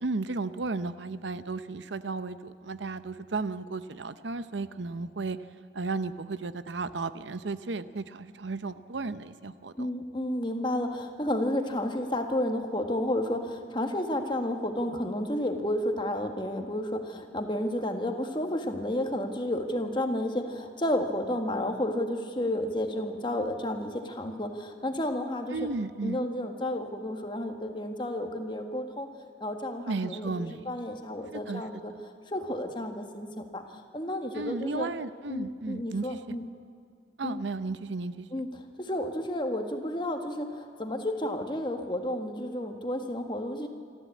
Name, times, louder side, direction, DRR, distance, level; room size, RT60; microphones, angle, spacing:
voice 1, 0.0-5.4 5.7-9.9 25.5-26.3 29.9-30.7 31.3-32.0 34.3-36.4 37.2-38.5, right 3 dB, 75° right, 13 dB, 0.7 m, -34 dB
voice 2, 9.8-25.6 26.0-29.1 29.4-31.9 32.3-34.9 35.3-36.4 37.2-37.4 38.3-38.5 38.8-43.7, left 1 dB, 25° left, 5 dB, 1.6 m, -31 dB
26.0 x 13.5 x 8.5 m, 2.2 s
head